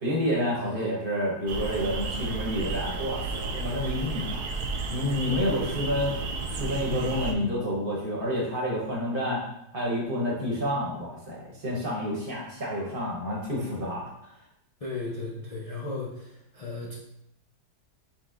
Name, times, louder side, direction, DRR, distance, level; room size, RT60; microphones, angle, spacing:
voice 1, 0.0-4.4 4.9-6.2 6.5-9.4 9.7-14.0, left 1 dB, 35° right, -4 dB, 1.1 m, -29 dB
voice 2, 0.6-0.9 14.8-16.9, left 3 dB, 65° left, -5 dB, 0.3 m, -36 dB
sound 1, 1.5-7.3, right 4 dB, 75° right, 1.1 m, -32 dB
5.9 x 3.5 x 2.4 m, 0.78 s
omnidirectional pair, 1.7 m